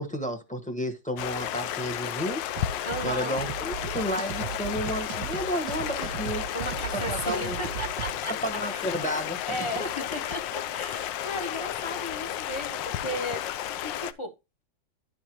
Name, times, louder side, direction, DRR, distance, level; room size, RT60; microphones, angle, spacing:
voice 1, 0.0-2.4 3.0-6.4 6.9-7.6 8.4-9.4, equal, 5° left, 0.8 m, -31 dB
Stream, 1.2-14.1, left 11 dB, 75° left, 1.2 m, -33 dB
sound 1, 2.6-8.1, right 10 dB, 75° right, 1.0 m, -37 dB
voice 2, 2.8-3.4 6.5-8.3 8.7-8.8 9.4-13.5 13.8-14.3, equal, 35° left, 0.4 m, -35 dB
11.5 x 4.6 x 2.9 m
omnidirectional pair, 2.1 m